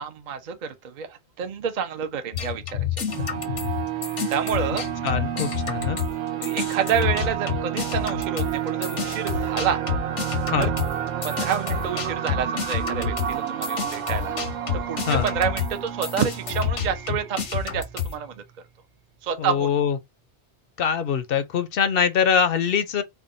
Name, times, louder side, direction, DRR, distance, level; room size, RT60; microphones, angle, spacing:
voice 1, 0.0-2.9 4.3-4.9 6.4-9.8 10.6-10.7 11.2-14.4 14.9-18.3 19.2-19.7, right 7 dB, 50° right, 0.6 m, -28 dB
sound 1, 2.3-6.2 6.4-18.2, left 8 dB, 85° left, 1.3 m, -29 dB
sound 2, 3.1-18.4, right 10 dB, 85° right, 1.0 m, -30 dB
voice 2, 5.0-6.0 10.4-10.7 15.1-15.3 19.4-20.0 20.8-23.0, left 7 dB, 60° left, 0.7 m, -23 dB
3.5 x 2.2 x 3.8 m
omnidirectional pair, 1.2 m